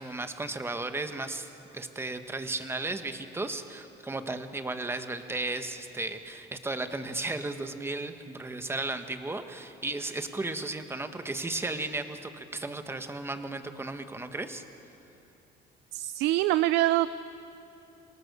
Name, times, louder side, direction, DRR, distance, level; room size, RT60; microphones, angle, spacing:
voice 1, 0.0-14.6, right 2 dB, 15° right, 8 dB, 1.4 m, -35 dB
voice 2, 15.9-17.1, right 16 dB, 90° right, 15 dB, 0.5 m, -24 dB
26.5 x 18.5 x 6.8 m, 2.9 s
cardioid pair, 110°, 17 cm